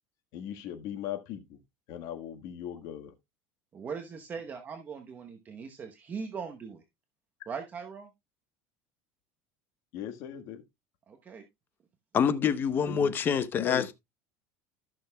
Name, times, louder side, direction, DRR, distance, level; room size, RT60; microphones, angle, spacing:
voice 1, 0.3-1.6 1.9-3.1 9.9-10.6 12.8-13.1 13.5-13.9, left 11 dB, 60° left, 1.5 m, -38 dB
voice 2, 3.7-6.8 7.5-8.1 11.1-11.4, right 6 dB, 25° right, 1.0 m, -40 dB
voice 3, 12.1-13.9, left 7 dB, 30° left, 0.9 m, -26 dB
14.5 x 6.4 x 2.3 m
cardioid pair, 150°, 7 cm